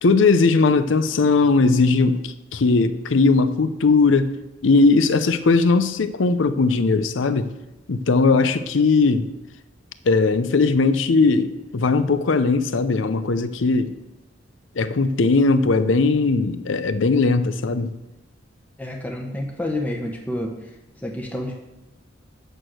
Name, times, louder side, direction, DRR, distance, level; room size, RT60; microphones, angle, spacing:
voice 1, 0.0-4.3 4.6-7.5 7.9-9.3 10.1-13.9 14.8-17.9, left 3 dB, 80° left, 12 dB, 0.6 m, -19 dB
voice 2, 18.8-20.7 21.0-21.5, left 1 dB, 10° left, 1 dB, 1.0 m, -29 dB
9.2 x 6.4 x 6.3 m, 0.95 s
head